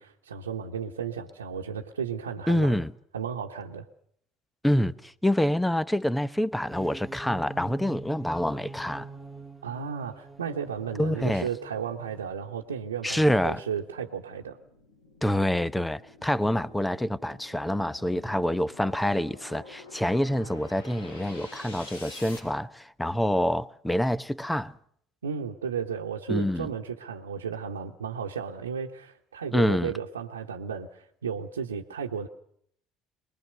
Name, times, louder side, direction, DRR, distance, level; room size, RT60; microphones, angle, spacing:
voice 1, 0.0-2.8 3.1-3.9 9.6-14.6 25.2-32.3, right 7 dB, 90° right, 1.2 m, -34 dB
voice 2, 2.5-2.9 4.6-9.1 11.0-11.5 13.0-13.6 15.2-24.7 26.3-26.7 29.5-29.9, left 1 dB, 5° left, 1.0 m, -26 dB
sound 1, 6.5-12.5, right 3 dB, 10° right, 1.6 m, -44 dB
sound 2, 9.6-22.4, left 2 dB, 85° left, 6.1 m, -50 dB
23.5 x 21.0 x 6.7 m
hypercardioid pair, 65°, 0 cm